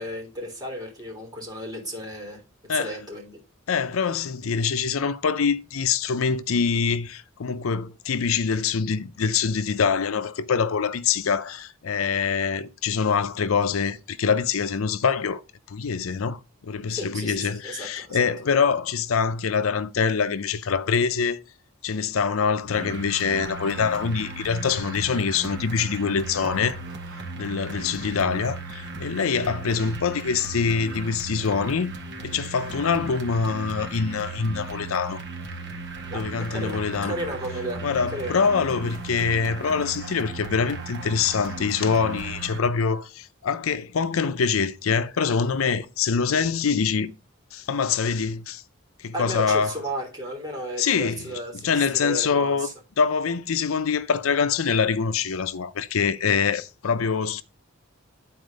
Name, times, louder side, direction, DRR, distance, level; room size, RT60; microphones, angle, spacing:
voice 1, 0.0-3.4 16.9-18.3 36.1-38.4 49.1-52.7, right 1 dB, 20° right, 3.3 m, -34 dB
voice 2, 3.7-15.4 15.7-21.4 21.8-26.8 27.4-31.9 32.2-35.2 36.1-37.1 37.8-47.1 47.5-48.6 49.0-49.8 50.8-52.7 53.0-57.4, left 6 dB, 90° left, 0.5 m, -24 dB
sound 1, 22.7-42.6, right 3 dB, 60° right, 1.4 m, -36 dB
9.7 x 4.3 x 5.2 m
head